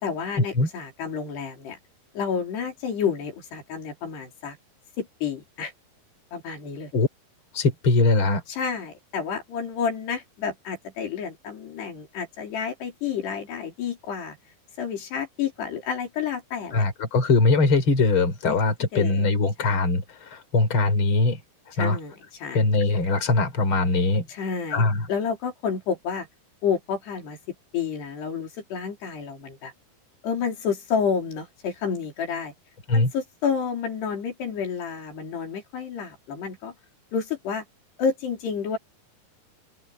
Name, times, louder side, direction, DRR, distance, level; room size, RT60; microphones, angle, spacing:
voice 1, 0.0-1.8 2.1-4.6 5.0-5.7 6.3-6.9 8.5-14.4 14.8-16.9 18.4-19.2 19.6-19.7 21.8-22.1 22.4-22.6 24.3-26.3 26.6-27.4 27.7-29.7 30.2-32.5 32.9-36.7 37.1-37.6 38.0-38.8, left 6 dB, 85° left, 6.3 m, -30 dB
voice 2, 7.5-8.4 16.7-21.4 21.8-22.0 22.5-24.3 24.7-25.1 32.9-33.1, left 3 dB, 30° left, 4.9 m, -21 dB
open air
omnidirectional pair, 4.6 m